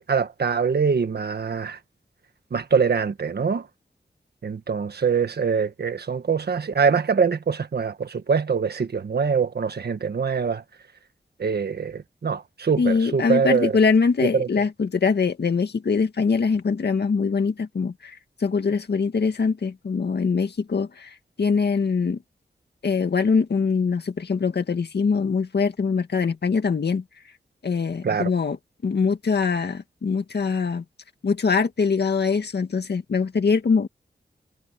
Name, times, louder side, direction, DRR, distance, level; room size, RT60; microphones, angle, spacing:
voice 1, 0.0-1.8 2.5-3.6 4.4-10.6 11.4-13.7 14.3-14.5 28.0-28.3, right 6 dB, 65° right, 1.5 m, -23 dB
voice 2, 12.8-22.2 22.8-27.0 27.6-28.6 28.8-30.8 31.2-33.9, left 5 dB, 70° left, 2.0 m, -23 dB
wide cardioid pair, 115°, 18 cm